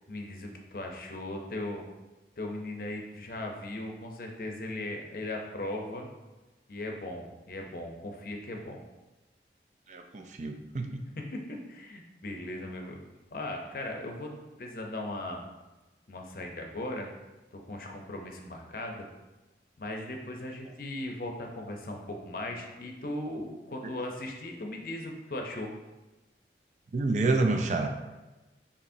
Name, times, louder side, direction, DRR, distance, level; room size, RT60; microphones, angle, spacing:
voice 1, 0.0-1.8 2.4-6.1 6.7-8.8 11.2-13.0 13.3-14.3 14.6-15.4 16.1-17.1 17.5-19.1 19.8-25.7, left 1 dB, 50° left, 2 dB, 0.6 m, -38 dB
voice 2, 9.9-11.0 23.8-23.9 26.9-27.9, right 3 dB, 40° right, 5 dB, 0.4 m, -28 dB
6.9 x 2.8 x 2.6 m, 1.1 s
head